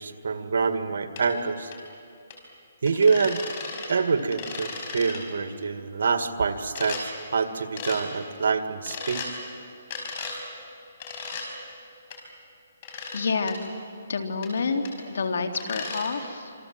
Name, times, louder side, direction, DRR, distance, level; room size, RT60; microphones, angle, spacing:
voice 1, 0.0-1.7 2.8-3.4 3.8-9.2, right 5 dB, 70° right, 9 dB, 2.0 m, -26 dB
Glass Washboard, 1.2-1.3 1.7-1.8 2.3-2.4 2.9-3.9 4.2-5.2 6.7-7.0 7.8-8.0 8.9-9.3 9.9-10.4 11.0-11.5 12.1-12.2 12.8-13.2 13.5-13.6 14.4-14.5 14.8-14.9 15.5-16.1, left 4 dB, 40° left, 5.0 m, -35 dB
voice 2, 13.1-13.6 14.1-16.5, left 4 dB, 75° left, 6 dB, 2.6 m, -28 dB
26.5 x 25.5 x 7.6 m, 2.5 s
hypercardioid pair, 160°, 0 cm